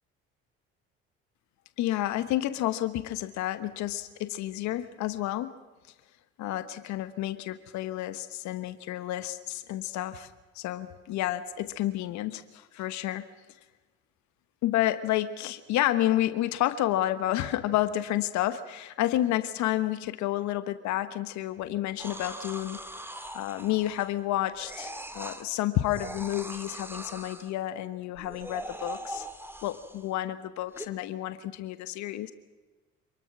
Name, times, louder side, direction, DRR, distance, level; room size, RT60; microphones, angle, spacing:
voice 1, 1.8-5.5 6.4-10.3 10.5-13.3 14.6-22.8 23.3-29.2 29.6-32.3, left 14 dB, 70° left, 12 dB, 1.3 m, -30 dB
sound 1, 22.0-24.2 24.6-25.4 25.9-27.5 28.2-30.1 30.7-30.9, right 1 dB, 10° right, 2.5 m, -41 dB
27.0 x 20.5 x 6.1 m, 1.2 s
hypercardioid pair, 60°, 30 cm